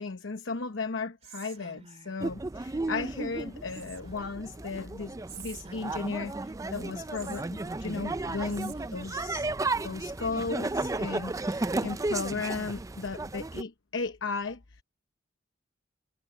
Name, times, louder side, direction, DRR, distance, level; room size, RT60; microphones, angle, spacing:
voice 1, 0.0-9.5 9.8-14.6, left 4 dB, 70° left, 0.9 m, -35 dB
Whispering, 1.2-2.3 3.7-4.4 5.3-6.5 7.1-8.1 8.5-9.3, right 6 dB, 35° right, 2.2 m, -49 dB
sound 1, 2.2-13.6, right 2 dB, 15° right, 0.4 m, -34 dB
head